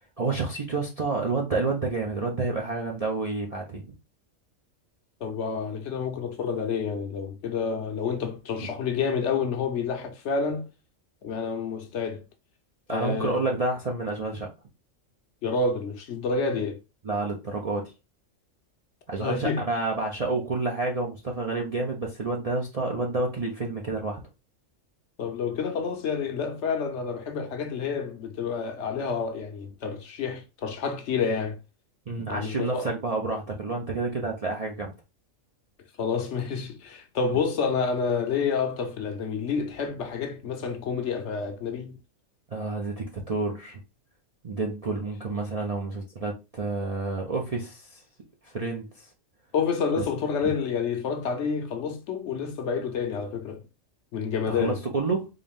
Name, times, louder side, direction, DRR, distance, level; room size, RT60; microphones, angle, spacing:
voice 1, 0.2-3.8 8.6-8.7 12.9-14.5 17.0-17.9 19.1-24.2 32.1-34.9 42.5-43.8 44.4-48.0 48.4-49.1 50.0-50.1 50.4-50.5 54.5-55.3, right 3 dB, 50° right, 0.4 m, -29 dB
voice 2, 5.2-10.7 11.2-12.2 12.9-13.4 15.4-16.8 19.2-19.6 25.2-31.6 32.3-32.9 36.0-42.0 49.5-53.6 54.1-54.8, left 5 dB, 65° left, 0.9 m, -29 dB
3.8 x 2.6 x 3.4 m
omnidirectional pair, 1.3 m